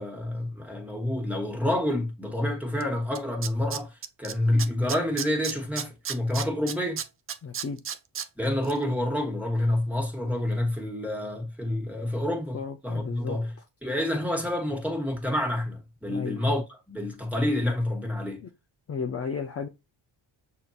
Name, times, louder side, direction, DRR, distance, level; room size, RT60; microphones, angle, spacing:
voice 1, 0.0-7.0 8.4-13.5 13.8-16.6 16.9-18.4, left 1 dB, 5° right, 1.4 m, -28 dB
Tools, 2.8-2.9 3.2-4.3 4.6-8.3 8.6-8.7, right 8 dB, 30° right, 0.4 m, -33 dB
voice 2, 7.4-7.8 12.5-13.4 16.1-16.4 18.9-19.7, left 5 dB, 30° left, 0.6 m, -33 dB
6.2 x 2.8 x 2.3 m
cardioid pair, 125°, 46 cm